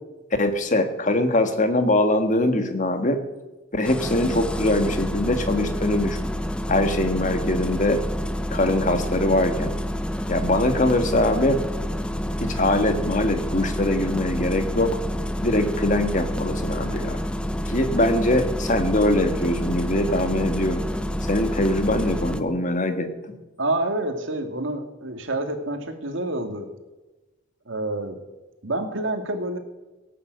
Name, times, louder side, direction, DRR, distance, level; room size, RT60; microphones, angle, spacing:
voice 1, 0.4-3.2 3.7-6.3 6.7-8.0 8.5-9.7 10.3-11.6 12.4-15.0 15.4-17.2 17.7-20.9 21.2-23.4, left 1 dB, 40° left, 7 dB, 1.7 m, -22 dB
Engine starting, 3.8-22.4, equal, 5° left, 0.7 m, -28 dB
voice 2, 23.6-26.7 27.7-28.2 28.6-29.6, right 2 dB, 65° right, 6 dB, 2.1 m, -28 dB
17.5 x 9.1 x 8.0 m, 1.1 s
head